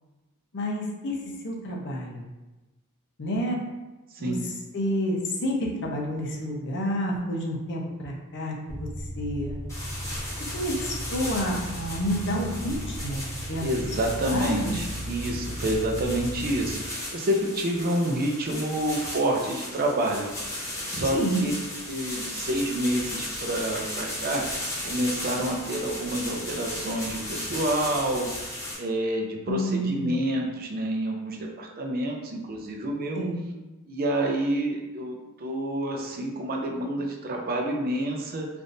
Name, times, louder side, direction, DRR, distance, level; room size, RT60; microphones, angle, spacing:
voice 1, 0.5-1.2 1.4-2.2 3.2-3.6 4.2-4.3 4.7-8.9 9.2-9.6 10.5-13.6 14.3-14.7 21.1-21.4 29.5-30.2 33.1-33.4, equal, 55° left, -1 dB, 0.6 m, -29 dB
sound 1, 8.7-16.7, equal, 80° right, 0.9 m, -36 dB
sound 2, 9.7-28.7, left 1 dB, 15° left, 1.1 m, -36 dB
voice 2, 13.6-20.3 20.8-21.5 21.9-28.3 28.8-33.2 33.9-38.5, right 1 dB, 40° right, 1 dB, 0.5 m, -28 dB
3.4 x 2.5 x 2.6 m, 1.1 s
head